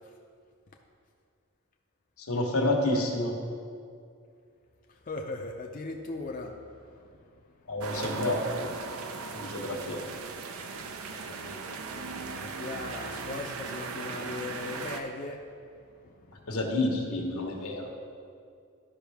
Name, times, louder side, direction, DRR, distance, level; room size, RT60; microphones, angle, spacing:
voice 1, 2.2-3.3 7.7-8.7 9.3-10.0 16.5-17.9, left 1 dB, 85° left, 1 dB, 1.2 m, -29 dB
voice 2, 5.1-6.5 11.1-15.4 16.1-16.4, left 3 dB, 40° left, 1 dB, 0.5 m, -39 dB
sound 1, 7.8-15.0, right 4 dB, 75° right, 0.6 m, -38 dB
12.5 x 5.4 x 3.5 m, 2.3 s
head